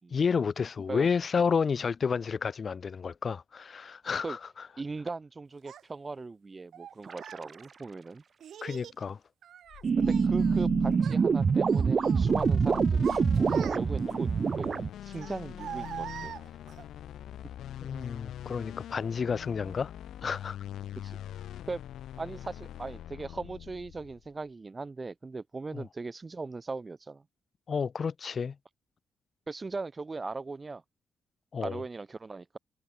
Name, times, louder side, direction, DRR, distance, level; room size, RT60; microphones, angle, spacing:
voice 1, 0.1-4.7 8.6-9.2 17.8-19.9 20.2-20.6 25.7-25.8 27.7-28.5 31.5-31.8, left 6 dB, 45° left, 1.0 m, -30 dB
voice 2, 4.8-8.2 10.0-14.3 14.6-14.7 15.0-16.3 19.7-19.8 21.0-21.2 21.7-21.8 22.2-27.2 29.5-30.8 31.6-32.6, right 3 dB, 30° right, 5.7 m, -39 dB
Child speech kid speaking, 5.7-5.8 6.7-7.5 8.4-9.0 9.4-10.7 10.9-11.3 11.7-12.3 12.8-14.1 15.1-16.9, right 9 dB, 70° right, 5.7 m, -43 dB
sound 1, 7.1-7.5 9.8-14.9, right 5 dB, 45° right, 1.1 m, -25 dB
sound 2, 9.7-24.3, left 11 dB, 80° left, 1.6 m, -43 dB
cardioid pair, 85°, 0 cm